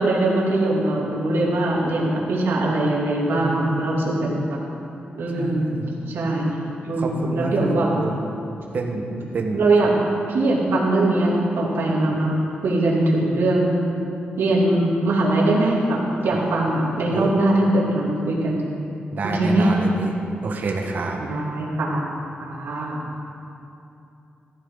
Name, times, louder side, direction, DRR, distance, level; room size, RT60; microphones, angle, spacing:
voice 1, 0.0-4.6 5.1-5.7 6.1-6.5 6.8-7.9 9.5-9.9 10.3-12.4 12.6-13.8 14.4-18.7 19.3-19.7 21.2-22.0 22.4-23.0, right 2 dB, 85° right, -4 dB, 2.9 m, -21 dB
voice 2, 3.4-3.7 5.3-5.9 7.0-8.2 8.7-9.1 9.3-9.6 16.3-16.4 17.1-17.3 19.1-20.1 20.4-21.2, right 3 dB, 50° right, 0 dB, 1.4 m, -28 dB
14.5 x 14.0 x 4.0 m, 2.8 s
wide cardioid pair, 135°, 4 cm